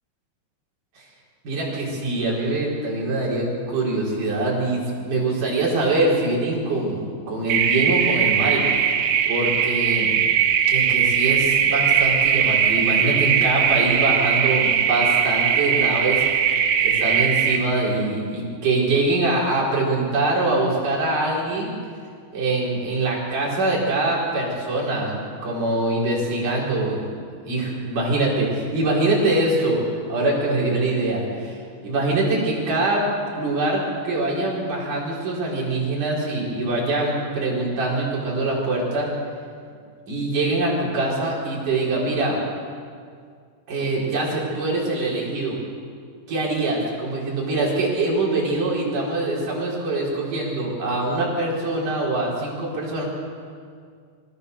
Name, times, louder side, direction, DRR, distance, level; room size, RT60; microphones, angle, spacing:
voice 1, 1.4-8.7 9.3-10.2 10.7-16.2 16.8-21.7 22.3-27.1 27.5-33.1 33.3-39.1 40.1-42.4 43.7-45.6 46.3-53.0, right 2 dB, 50° right, -5 dB, 5.9 m, -24 dB
sound 1, 7.5-17.6, right 8 dB, 80° right, 3.7 m, -20 dB
25.5 x 15.0 x 6.8 m, 2.2 s
omnidirectional pair, 5.0 m